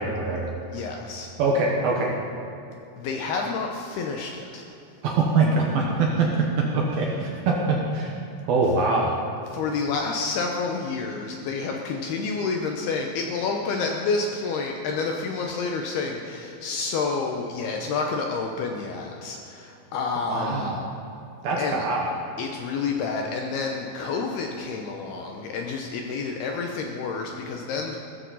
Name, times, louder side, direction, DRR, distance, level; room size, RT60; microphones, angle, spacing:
voice 1, 0.0-0.5 1.4-2.1 5.0-6.3 6.6-8.2 8.5-9.2 20.3-20.8 21.4-22.0, right 3 dB, 70° right, -1 dB, 2.4 m, -23 dB
voice 2, 0.7-1.3 3.0-4.7 9.5-20.7 21.6-21.9 22.4-28.0, left 4 dB, 75° left, 1 dB, 2.4 m, -29 dB
16.5 x 14.0 x 4.1 m, 2.7 s
omnidirectional pair, 5.4 m